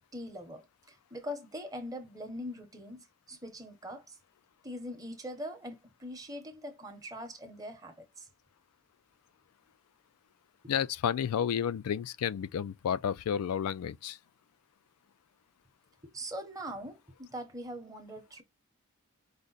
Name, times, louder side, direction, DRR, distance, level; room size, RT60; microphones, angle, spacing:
voice 1, 0.1-4.2 4.6-8.3 16.0-18.4, equal, 15° right, 0.8 m, -42 dB
voice 2, 10.7-14.2, left 8 dB, 85° left, 0.3 m, -31 dB
4.9 x 2.1 x 3.9 m
head